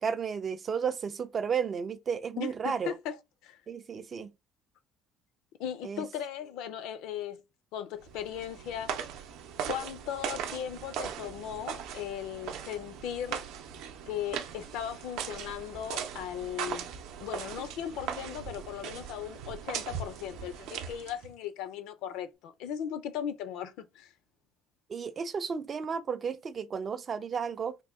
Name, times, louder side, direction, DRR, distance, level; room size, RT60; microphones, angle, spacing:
voice 1, 0.0-3.0 3.7-4.3 5.8-6.1 24.9-27.8, right 6 dB, 30° right, 0.3 m, -33 dB
voice 2, 2.4-3.2 3.4-3.6 5.6-7.4 7.7-8.9 9.7-13.4 14.1-16.9 17.2-24.1, left 9 dB, 75° left, 0.5 m, -37 dB
sound 1, 8.0-21.3, right 8 dB, 75° right, 0.6 m, -39 dB
3.5 x 2.2 x 3.6 m
cardioid pair, 145°, 0 cm